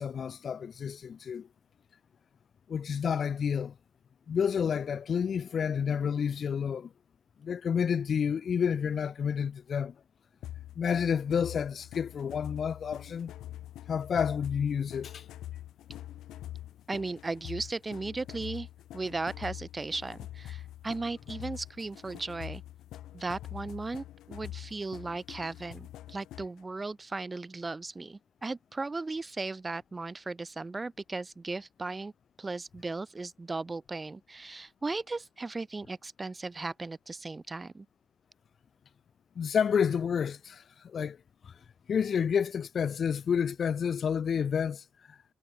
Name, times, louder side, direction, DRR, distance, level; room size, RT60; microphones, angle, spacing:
voice 1, 0.0-1.5 2.7-3.7 4.3-6.9 7.4-9.9 10.8-13.3 13.9-15.2 39.4-41.2 41.4-41.5 41.9-45.2, left 7 dB, 50° left, 0.3 m, -30 dB
sound 1, 10.4-26.6, left 13 dB, 85° left, 0.9 m, -44 dB
voice 2, 16.9-18.7 18.9-22.6 23.1-32.1 32.4-37.9, right 3 dB, 25° right, 1.0 m, -36 dB
cardioid pair, 90°, 0 cm